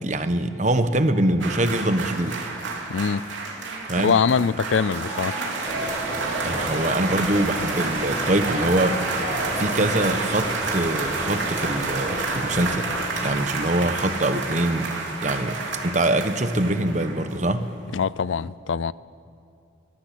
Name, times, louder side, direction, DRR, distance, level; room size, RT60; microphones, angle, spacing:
voice 1, 0.0-2.4 3.9-4.2 6.4-9.0 9.6-12.9 13.2-14.9 15.2-17.7, right 1 dB, 40° right, 1.1 m, -24 dB
sound 1, 1.4-17.7 18.0-18.1, right 3 dB, 90° right, 3.5 m, -29 dB
voice 2, 2.9-3.2 4.0-5.3 17.9-18.9, left 6 dB, 85° left, 0.5 m, -23 dB
Stream, 4.8-11.8, right 1 dB, 15° right, 3.0 m, -38 dB
sound 2, 5.6-13.1, left 1 dB, 30° left, 2.6 m, -35 dB
23.0 x 18.5 x 8.5 m
head